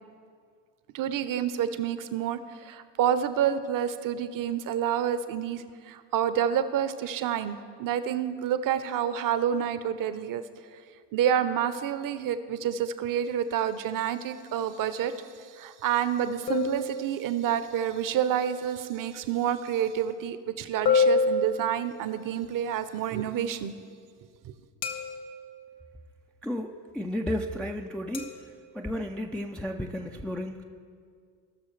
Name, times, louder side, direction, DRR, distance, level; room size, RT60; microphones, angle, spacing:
voice 1, 0.9-10.4 11.1-23.7 24.4-24.5, right 9 dB, 40° right, 12 dB, 0.7 m, -28 dB
sound 1, 16.5-17.6 20.9-22.2 24.8-25.6 28.1-28.5, left 4 dB, 90° left, 1.0 m, -27 dB
voice 2, 26.4-28.3 28.7-30.6, equal, 5° left, 2 dB, 0.3 m, -33 dB
18.5 x 6.3 x 3.2 m, 2.1 s
hypercardioid pair, 70°, 49 cm